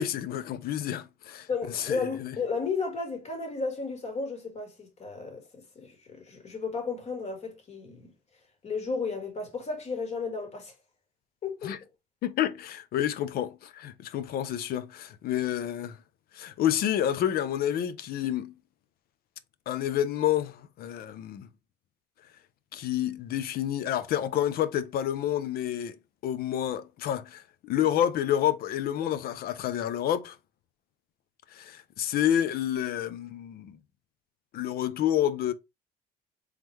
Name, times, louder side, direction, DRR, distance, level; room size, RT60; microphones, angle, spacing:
voice 1, 0.0-1.5 1.7-2.4 11.6-11.8 12.2-16.0 16.3-18.5 19.7-21.5 22.7-26.0 26.2-30.4 31.5-33.8 34.5-35.5, left 11 dB, 65° left, 0.6 m, -29 dB
voice 2, 1.5-8.1 8.6-10.7 11.4-11.7, left 4 dB, 40° left, 1.7 m, -33 dB
3.7 x 3.1 x 3.1 m
cardioid pair, 110°, 17 cm